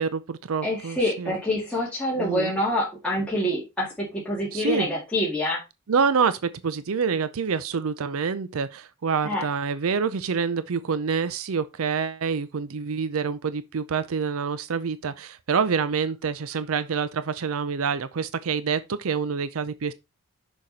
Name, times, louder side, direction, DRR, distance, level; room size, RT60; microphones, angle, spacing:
voice 1, 0.0-1.4 2.2-2.5 4.5-4.9 5.9-19.9, right 6 dB, 80° right, 0.5 m, -27 dB
voice 2, 0.6-5.6 9.2-9.4, left 1 dB, 5° left, 2.2 m, -26 dB
6.5 x 5.9 x 4.0 m
head